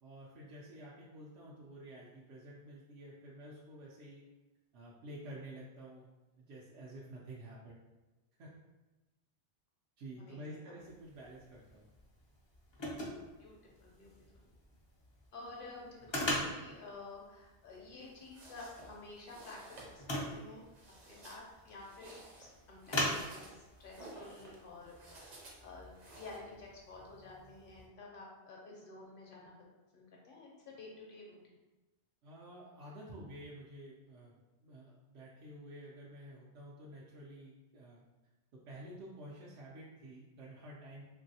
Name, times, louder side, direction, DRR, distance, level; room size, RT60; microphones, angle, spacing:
voice 1, 0.0-4.3 4.7-6.1 6.4-7.8 8.4-8.5 10.0-11.9 32.2-38.0 38.5-41.0, right 1 dB, 80° right, -5 dB, 0.9 m, -50 dB
voice 2, 10.2-10.7 13.4-13.5 13.8-14.5 15.3-20.6 21.0-25.3 25.6-29.5 29.9-31.5, left 3 dB, 55° left, -2 dB, 0.8 m, -51 dB
sound 1, 10.8-27.9, left 1 dB, 35° left, 0.4 m, -43 dB
sound 2, 18.0-26.4, right 2 dB, 50° right, 0.6 m, -55 dB
3.1 x 2.6 x 2.7 m, 1.1 s
omnidirectional pair, 1.1 m